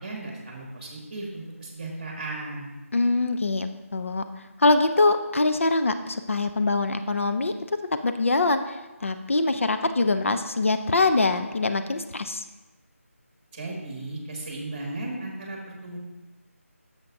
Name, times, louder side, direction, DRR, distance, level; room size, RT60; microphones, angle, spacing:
voice 1, 0.0-2.7 13.5-16.0, right 2 dB, 30° right, -1 dB, 1.9 m, -35 dB
voice 2, 2.9-4.2 4.6-7.5 8.0-8.8 9.0-12.4, left 3 dB, 60° left, 8 dB, 0.5 m, -23 dB
10.5 x 7.3 x 2.6 m, 1.1 s
figure-of-eight pair, 170°, 8 cm